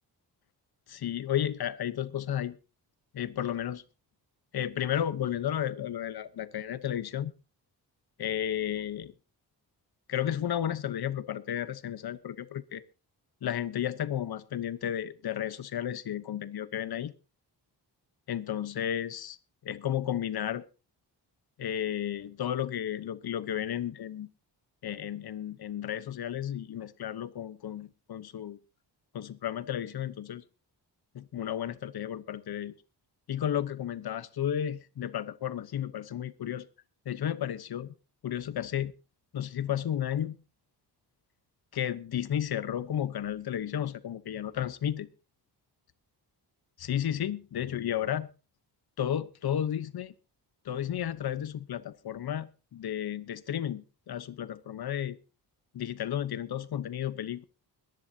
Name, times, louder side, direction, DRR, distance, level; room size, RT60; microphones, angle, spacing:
voice 1, 0.9-2.6 3.1-3.8 4.5-7.3 8.2-9.1 10.1-12.8 13.4-17.1 18.3-19.4 19.6-20.6 21.6-24.3 24.8-28.6 29.1-30.4 31.1-32.7 33.3-36.7 37.0-37.9 38.2-38.9 39.3-40.4 41.7-45.1 46.8-48.3 49.0-50.1 50.6-55.2 55.7-57.4, left 10 dB, 65° left, 1.0 m, -33 dB
22.0 x 10.5 x 2.8 m
cardioid pair, 90°, 41 cm